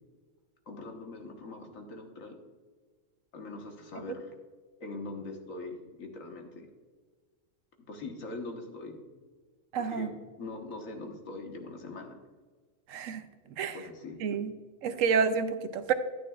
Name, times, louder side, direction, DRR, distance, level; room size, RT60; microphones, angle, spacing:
voice 1, 0.7-2.3 3.3-4.3 4.8-6.7 7.9-9.0 9.8-12.2 13.7-14.4, left 2 dB, 80° left, 2 dB, 1.7 m, -42 dB
voice 2, 9.7-10.1 12.9-13.2 13.5-13.8 14.2-14.5 14.8-15.9, right 6 dB, 80° right, 10 dB, 1.0 m, -29 dB
11.0 x 9.2 x 2.4 m, 1.5 s
omnidirectional pair, 1.3 m